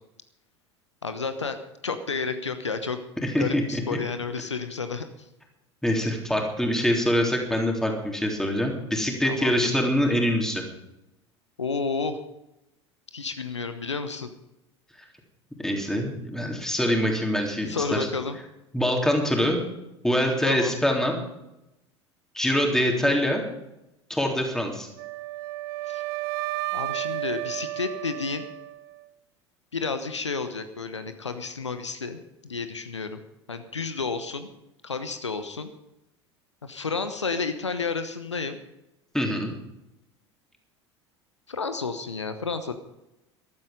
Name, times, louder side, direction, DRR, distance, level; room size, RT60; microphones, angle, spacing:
voice 1, 1.0-1.6 1.8-3.0 3.4-5.0 9.2-9.5 11.6-12.2 13.1-14.3 17.7-18.4 20.4-20.7 25.9-26.0 26.7-28.4 29.7-33.2 33.5-34.5 34.8-35.7 36.6-38.6 41.5-42.7, left 4 dB, 80° left, 9 dB, 1.0 m, -31 dB
voice 2, 3.2-3.8 5.8-10.6 15.6-18.1 18.7-19.6 20.0-21.1 22.3-23.4 24.1-24.9 39.1-39.5, equal, 5° left, 1 dB, 3.5 m, -24 dB
Wind instrument woodwind instrument, 25.0-29.1, right 18 dB, 55° right, 0.7 m, -32 dB
14.5 x 12.5 x 5.3 m, 0.91 s
figure-of-eight pair, 75°, 15 cm